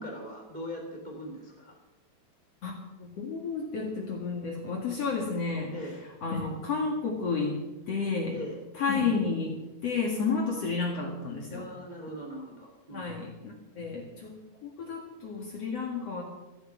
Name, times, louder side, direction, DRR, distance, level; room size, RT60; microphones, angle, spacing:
voice 1, 0.0-1.8 5.7-6.0 8.3-8.6 11.5-13.2, equal, 15° right, 1 dB, 2.3 m, -40 dB
voice 2, 3.0-5.8 6.2-7.6 7.9-8.3 8.7-9.5 9.8-11.6 12.9-14.3 14.6-16.2, left 4 dB, 45° left, 0 dB, 2.7 m, -31 dB
14.0 x 11.5 x 7.5 m, 1.1 s
omnidirectional pair, 4.5 m